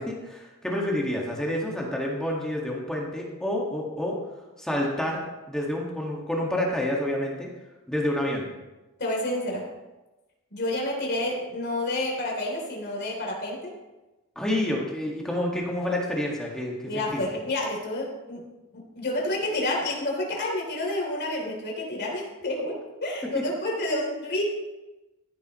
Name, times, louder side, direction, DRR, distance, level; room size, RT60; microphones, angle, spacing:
voice 1, 0.0-4.2 4.6-5.2 5.5-7.5 7.9-8.5 14.4-17.2, left 1 dB, 5° left, -2 dB, 1.8 m, -28 dB
voice 2, 9.0-9.7 10.5-13.7 16.9-18.5 18.7-24.4, left 1 dB, 50° left, -1 dB, 3.3 m, -29 dB
14.5 x 9.8 x 3.1 m, 1.1 s
head